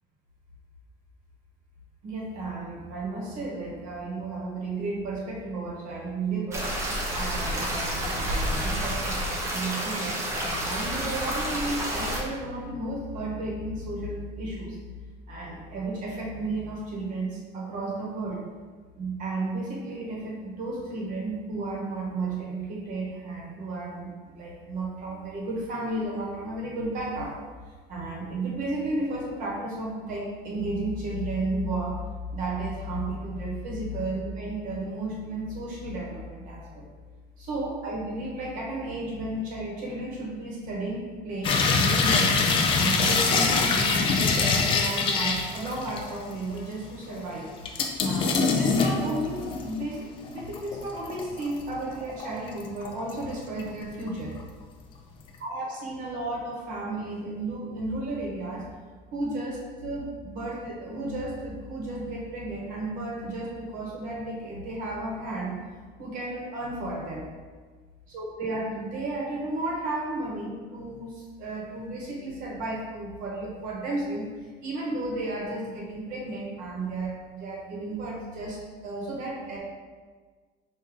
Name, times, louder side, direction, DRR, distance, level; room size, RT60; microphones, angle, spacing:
voice 1, 2.0-6.7 7.1-14.8 15.3-18.4 18.9-27.3 27.9-32.0 32.3-36.9 37.4-42.3 42.8-47.5 48.0-54.3 55.4-58.6 59.1-65.6 66.0-67.3 68.1-74.2 74.6-79.6, right 2 dB, 50° right, -3 dB, 1.0 m, -33 dB
sound 1, 6.5-12.2, equal, 15° right, 0.6 m, -29 dB
sound 2, 41.4-46.2 46.6-46.7 47.7-49.8 50.3-51.6 52.0-53.2 53.6-54.1 54.4-54.5, left 4 dB, 30° left, 0.4 m, -24 dB
4.8 x 2.7 x 3.6 m, 1.5 s
cardioid pair, 175°, 18 cm